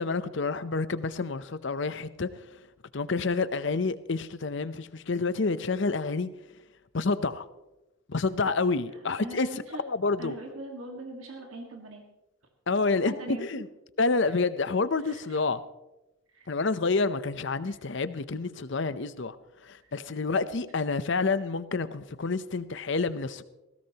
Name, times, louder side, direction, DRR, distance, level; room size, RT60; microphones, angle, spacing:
voice 1, 0.0-2.3 2.9-6.3 6.9-7.5 8.1-9.5 9.8-10.3 12.7-13.7 14.0-15.6 16.5-19.4 19.6-23.4, left 4 dB, 55° left, 0.7 m, -28 dB
voice 2, 9.2-9.8 10.2-12.0 13.0-13.5 15.0-15.4 16.3-16.5 17.6-17.8 19.8-19.9, right 2 dB, 75° right, 1.8 m, -41 dB
19.5 x 16.0 x 2.9 m
head